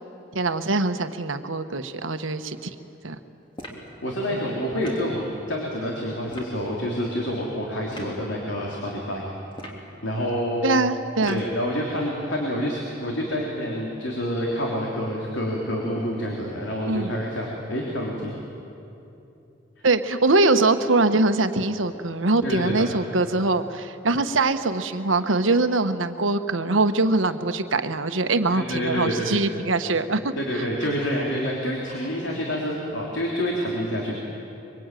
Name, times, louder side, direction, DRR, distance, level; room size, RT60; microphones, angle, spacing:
voice 1, 0.3-2.7 3.0-3.1 4.3-4.4 10.6-11.4 16.9-17.1 19.8-30.6, right 3 dB, 85° right, 9 dB, 1.3 m, -23 dB
sound 1, 3.6-3.9 4.8-5.1 6.3-6.6 7.9-8.1 9.5-9.9 11.2-11.6, equal, 25° left, 3.2 m, -40 dB
voice 2, 4.0-9.3 10.0-10.6 11.3-18.3 22.4-23.0 28.5-29.4 30.4-34.2, equal, 70° left, -2 dB, 3.5 m, -28 dB
24.5 x 24.0 x 9.2 m, 2.9 s
head